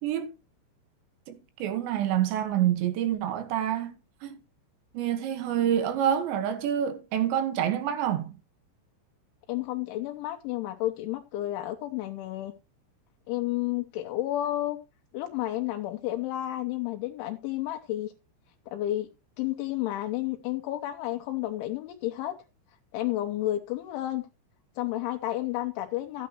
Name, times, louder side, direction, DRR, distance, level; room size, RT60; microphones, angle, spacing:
voice 1, 1.3-4.0 4.2-4.4 4.9-8.4, right 10 dB, 70° right, 3.4 m, -27 dB
voice 2, 9.5-12.5 13.3-14.8 15.1-18.1 18.7-19.1 19.4-22.3 22.9-24.3 24.8-26.3, left 15 dB, 80° left, 3.2 m, -31 dB
13.5 x 9.4 x 2.9 m
omnidirectional pair, 5.6 m